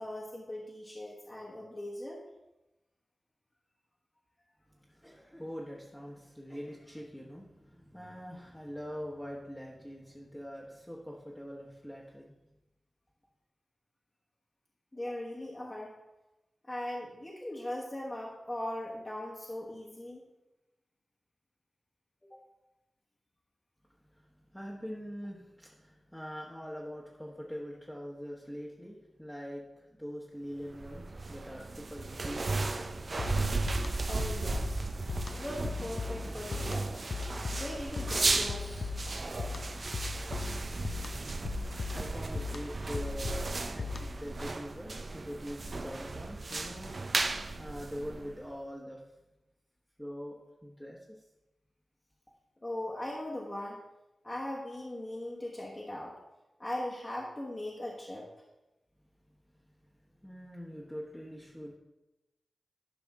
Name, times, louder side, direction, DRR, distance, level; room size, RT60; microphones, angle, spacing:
voice 1, 0.0-2.2 14.9-15.9 16.6-20.2 22.3-22.4 34.1-34.8 35.3-37.0 37.5-38.9 52.6-53.8 54.2-56.2 56.6-58.3, left 1 dB, 25° left, -4 dB, 1.3 m, -39 dB
voice 2, 4.8-12.4 24.1-32.7 41.3-47.0 47.3-49.0 50.0-51.2 59.5-59.7 60.2-61.8, equal, 5° left, -5 dB, 1.1 m, -43 dB
sound 1, 30.7-48.5, right 3 dB, 50° right, 0.5 m, -35 dB
sound 2, 33.2-44.3, left 4 dB, 65° left, 0.5 m, -39 dB
11.5 x 5.2 x 3.6 m, 1.0 s
wide cardioid pair, 75°, 0 cm